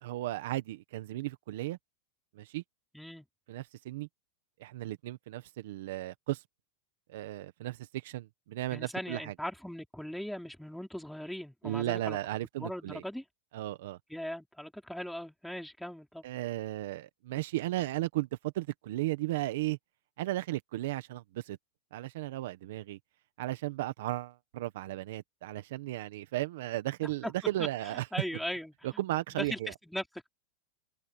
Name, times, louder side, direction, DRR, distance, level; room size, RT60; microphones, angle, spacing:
voice 1, 0.0-1.8 2.3-2.6 3.5-4.1 4.6-6.4 7.1-9.3 11.6-13.0 13.5-14.0 16.2-19.8 20.2-21.6 21.9-23.0 23.4-28.1 28.8-29.7, right 16 dB, 65° right, 1.4 m, -35 dB
voice 2, 2.9-3.3 8.7-12.2 12.6-13.2 14.1-16.2 27.2-27.3 27.6-27.7 28.1-28.7 29.3-30.3, equal, ahead, 4.3 m, -39 dB
supercardioid pair, 155°, 0 cm